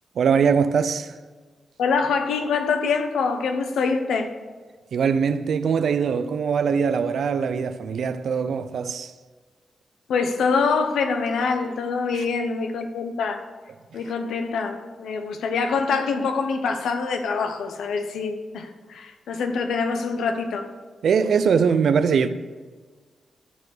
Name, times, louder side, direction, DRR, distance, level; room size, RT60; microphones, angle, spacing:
voice 1, 0.2-1.2 4.9-9.1 12.1-12.2 21.0-22.3, right 6 dB, 75° right, 0.5 m, -22 dB
voice 2, 1.8-4.3 10.1-13.4 13.9-20.7, left 5 dB, 80° left, 0.8 m, -25 dB
13.5 x 4.6 x 6.5 m
supercardioid pair, 40°, 0 cm